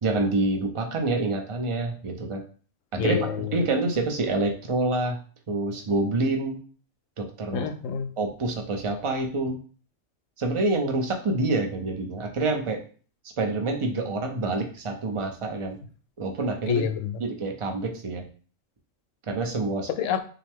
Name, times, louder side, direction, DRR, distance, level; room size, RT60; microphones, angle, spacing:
voice 1, 0.0-2.4 2.9-5.2 5.5-6.6 7.2-7.7 8.2-9.6 10.4-12.8 13.4-15.8 16.2-16.8 17.2-18.2 19.3-19.9, right 2 dB, 35° right, 0.5 m, -27 dB
voice 2, 3.0-3.6 7.5-8.1 16.7-17.2 19.9-20.2, left 7 dB, 75° left, 0.9 m, -27 dB
5.7 x 2.2 x 3.5 m
omnidirectional pair, 1.3 m